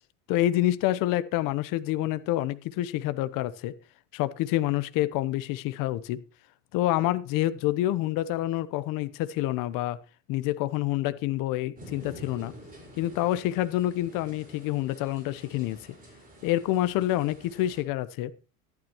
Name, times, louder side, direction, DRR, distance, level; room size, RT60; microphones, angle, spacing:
voice 1, 0.3-3.7 4.1-6.2 6.7-10.0 10.3-12.5 13.0-15.8 16.4-18.3, left 14 dB, 50° left, 15 dB, 1.0 m, -27 dB
sound 1, 11.8-17.8, right 1 dB, 20° right, 4.9 m, -48 dB
14.0 x 12.0 x 3.0 m, 0.33 s
supercardioid pair, 120°, 43 cm